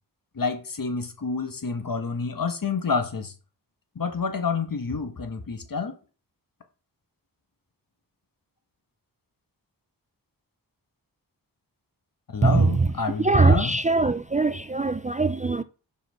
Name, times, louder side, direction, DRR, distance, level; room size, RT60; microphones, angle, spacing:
voice 1, 0.3-3.3 3.9-6.0 12.3-13.8 14.5-14.6, left 5 dB, 50° left, 1.6 m, -28 dB
voice 2, 12.4-12.9 13.2-15.6, right 3 dB, 20° right, 0.4 m, -21 dB
5.9 x 5.1 x 5.7 m
cardioid pair, 40°, 42 cm